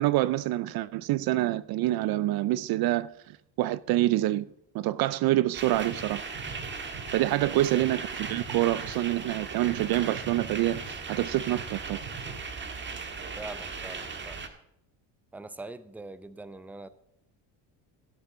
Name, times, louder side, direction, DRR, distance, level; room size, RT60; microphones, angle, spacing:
voice 1, 0.0-3.1 3.6-4.5 4.7-6.2 7.1-12.0, right 15 dB, 55° right, 0.5 m, -26 dB
sound 1, 5.5-14.5, right 5 dB, 25° right, 1.6 m, -38 dB
sound 2, 5.5-5.6 5.9-6.1 6.3-7.5 7.8-9.4 9.6-9.9 10.1-11.3 11.5-11.8 12.0-12.6, right 4 dB, 85° right, 5.5 m, -44 dB
voice 2, 7.4-7.8 13.4-14.4 15.3-16.9, right 2 dB, 5° right, 0.6 m, -43 dB
17.0 x 8.1 x 3.9 m
cardioid pair, 115°, 44 cm